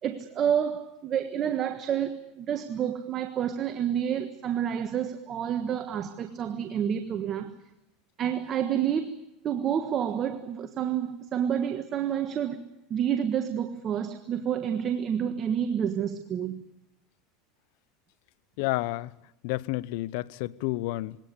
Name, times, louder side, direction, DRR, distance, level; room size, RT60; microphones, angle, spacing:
voice 1, 0.0-7.6 8.2-12.6 12.9-16.6, right 9 dB, 40° right, 1.4 m, -29 dB
voice 2, 18.6-19.1 19.4-21.2, left 19 dB, 70° left, 0.8 m, -30 dB
21.5 x 18.0 x 9.8 m
supercardioid pair, 120°, 0 cm